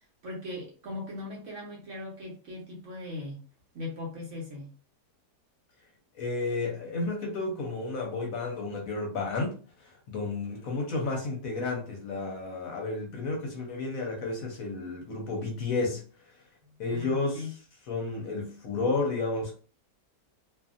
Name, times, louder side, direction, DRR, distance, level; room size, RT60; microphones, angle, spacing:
voice 1, 0.2-3.4 3.7-4.7 16.9-17.5, left 2 dB, 55° right, 1.0 m, -39 dB
voice 2, 6.2-16.0 16.8-17.6 17.9-19.5, left 3 dB, 65° left, 1.0 m, -32 dB
2.7 x 2.5 x 2.4 m
omnidirectional pair, 1.8 m